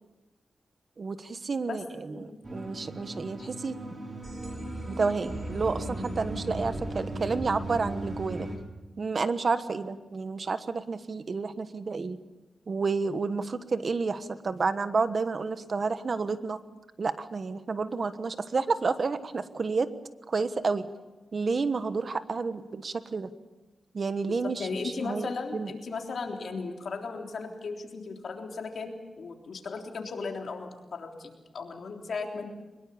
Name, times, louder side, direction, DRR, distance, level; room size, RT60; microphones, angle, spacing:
voice 1, 1.0-3.8 4.9-8.5 9.0-12.2 12.7-16.6 17.0-19.9 20.3-20.8 21.3-23.3 23.9-25.7, right 4 dB, 50° right, 11 dB, 1.2 m, -30 dB
sound 1, 2.4-8.6, right 1 dB, 35° right, 4.4 m, -36 dB
voice 2, 24.3-32.5, left 4 dB, 70° left, 2 dB, 3.5 m, -36 dB
23.0 x 21.5 x 7.1 m, 1.1 s
cardioid pair, 80°, 0 cm